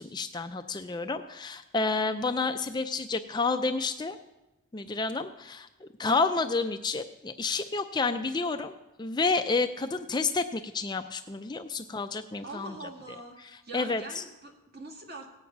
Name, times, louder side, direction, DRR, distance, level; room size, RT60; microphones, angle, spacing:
voice 1, 0.0-4.2 4.7-12.7 13.7-14.2, left 3 dB, 20° left, 7 dB, 0.4 m, -30 dB
voice 2, 12.4-13.4 13.6-15.3, right 2 dB, 45° right, 2 dB, 2.1 m, -43 dB
17.5 x 8.6 x 6.0 m, 0.99 s
head